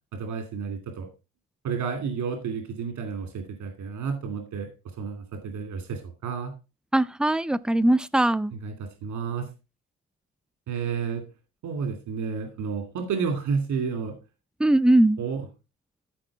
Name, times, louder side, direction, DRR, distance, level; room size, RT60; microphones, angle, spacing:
voice 1, 0.1-1.1 1.6-4.7 5.0-6.5 8.5-8.7 9.0-9.5 10.7-11.2 11.6-14.2 15.2-15.5, right 6 dB, 80° right, 2.6 m, -31 dB
voice 2, 6.9-8.5 14.6-15.2, right 1 dB, 5° right, 0.5 m, -20 dB
14.0 x 4.7 x 4.6 m
cardioid pair, 90°, 30 cm